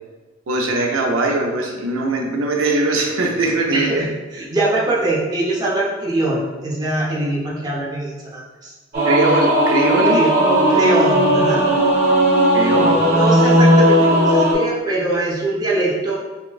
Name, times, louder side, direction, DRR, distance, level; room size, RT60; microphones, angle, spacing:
voice 1, 0.5-4.0 9.0-10.2 12.5-13.0, right 2 dB, 85° right, 1 dB, 0.5 m, -20 dB
voice 2, 3.7-8.7 10.0-10.3 10.7-11.6 12.8-16.2, right 2 dB, 20° right, -5 dB, 0.7 m, -22 dB
Singing / Musical instrument, 8.9-14.5, right 1 dB, 55° right, 1.1 m, -15 dB
5.7 x 2.1 x 2.3 m, 1.3 s
head